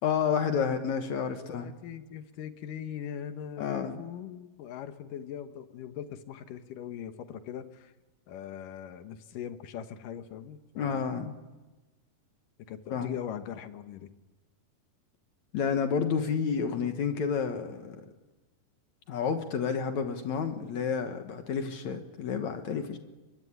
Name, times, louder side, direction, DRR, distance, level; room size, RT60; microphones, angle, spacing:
voice 1, 0.0-1.7 3.6-4.0 10.8-11.4 12.9-13.1 15.5-18.0 19.1-23.0, left 6 dB, 65° left, 7 dB, 2.6 m, -30 dB
voice 2, 1.4-7.9 8.3-11.1 12.7-14.1, left 9 dB, 90° left, 9 dB, 2.8 m, -41 dB
24.0 x 22.5 x 9.9 m, 1.2 s
omnidirectional pair, 3.7 m